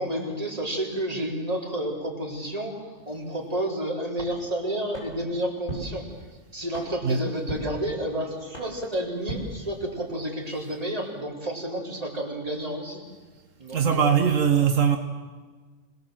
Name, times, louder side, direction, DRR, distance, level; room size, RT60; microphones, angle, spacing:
voice 1, 0.0-6.1 6.5-13.0 13.6-14.1, right 1 dB, 30° right, 4.1 m, -30 dB
sound 1, 4.9-10.2, right 1 dB, 80° left, 7.5 m, -40 dB
voice 2, 13.7-15.0, right 7 dB, 80° right, 1.6 m, -21 dB
25.5 x 19.0 x 7.7 m
omnidirectional pair, 1.3 m